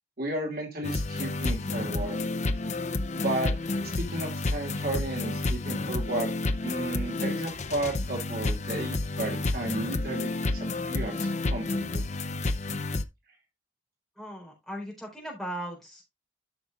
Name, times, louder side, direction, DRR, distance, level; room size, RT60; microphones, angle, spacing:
voice 1, 0.2-2.2 3.1-3.5 3.8-6.3 6.6-12.1, right 2 dB, 55° right, 1 dB, 2.6 m, -33 dB
sound 1, 0.8-13.0, left 2 dB, 40° left, 0.6 m, -30 dB
voice 2, 14.2-16.0, equal, ahead, -2 dB, 4.1 m, -38 dB
13.5 x 6.1 x 2.4 m, 0.19 s
head